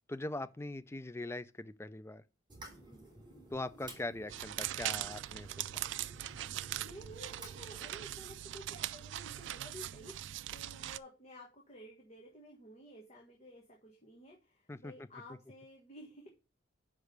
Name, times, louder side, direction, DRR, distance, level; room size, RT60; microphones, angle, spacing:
voice 1, 0.1-2.2 3.5-5.8 14.7-15.1, left 2 dB, 15° left, 0.4 m, -41 dB
sound 1, 2.5-8.1, right 2 dB, 25° right, 3.0 m, -54 dB
voice 2, 2.9-3.2 6.8-16.3, equal, 35° left, 1.5 m, -53 dB
sound 2, 4.3-11.0, right 13 dB, 65° right, 0.3 m, -41 dB
6.0 x 4.9 x 6.5 m
head